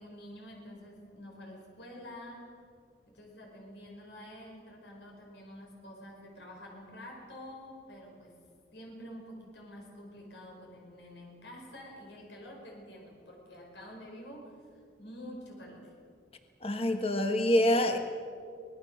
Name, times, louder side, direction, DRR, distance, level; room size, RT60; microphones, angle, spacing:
voice 1, 0.0-2.5 3.1-8.4 8.7-14.5 15.0-15.9, equal, 80° left, 0 dB, 5.0 m, -48 dB
voice 2, 16.6-18.0, left 1 dB, 35° left, 6 dB, 1.4 m, -26 dB
24.5 x 19.5 x 6.6 m, 2.3 s
head